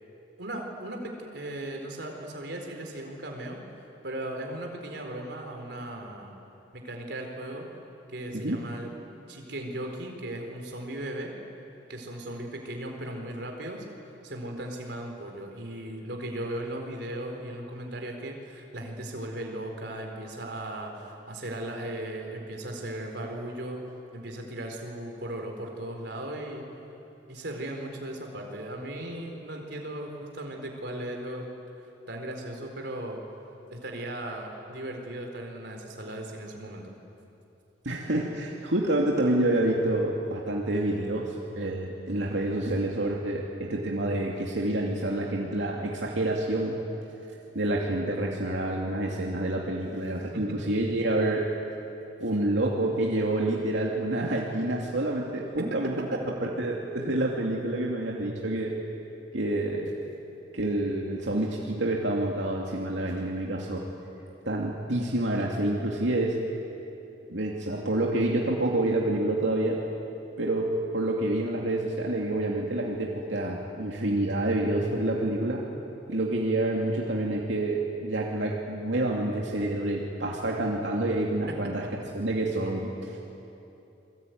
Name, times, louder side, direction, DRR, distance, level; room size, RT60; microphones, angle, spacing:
voice 1, 0.4-6.3 6.7-7.7 8.1-8.9 9.3-11.3 11.9-23.8 24.1-26.7 27.3-31.5 31.8-33.2 33.7-36.9 50.3-50.6 55.6-56.5 75.0-75.1 81.5-81.9, right 1 dB, 65° right, 2 dB, 4.3 m, -37 dB
voice 2, 37.8-46.8 47.5-51.4 52.2-56.1 56.4-58.7 59.3-59.9 60.5-63.8 64.5-66.4 67.3-69.8 70.4-75.6 76.1-81.8 82.1-83.2, right 1 dB, 90° right, -2 dB, 2.6 m, -28 dB
28.0 x 22.0 x 9.4 m, 2.9 s
head